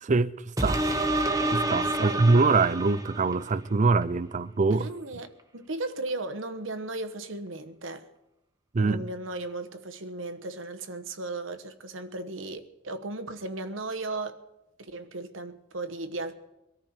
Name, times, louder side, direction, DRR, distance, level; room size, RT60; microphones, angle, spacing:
voice 1, 0.0-0.3 0.6-0.8 1.5-4.9 8.7-9.0, right 3 dB, 40° right, 0.5 m, -23 dB
sound 1, 0.6-3.5 4.0-4.1, right 1 dB, 20° right, 1.1 m, -28 dB
voice 2, 1.8-2.2 4.7-8.1 8.8-14.4 14.8-16.3, right 2 dB, 85° right, 1.2 m, -36 dB
23.5 x 14.0 x 4.4 m
head